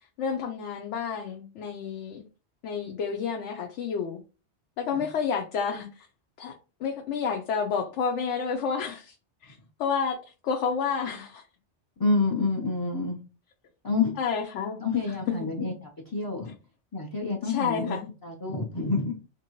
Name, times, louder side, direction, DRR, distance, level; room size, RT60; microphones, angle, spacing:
voice 1, 0.2-2.2 2.6-4.2 4.8-6.1 6.4-6.5 6.8-9.1 9.4-10.2 10.4-11.4 14.2-14.8 15.3-15.4 17.4-18.1, left 6 dB, 85° left, 0.9 m, -30 dB
voice 2, 12.0-13.2 13.8-14.2 14.8-16.5 16.9-19.2, left 3 dB, 35° left, 0.3 m, -28 dB
3.4 x 2.6 x 2.9 m
omnidirectional pair, 1.2 m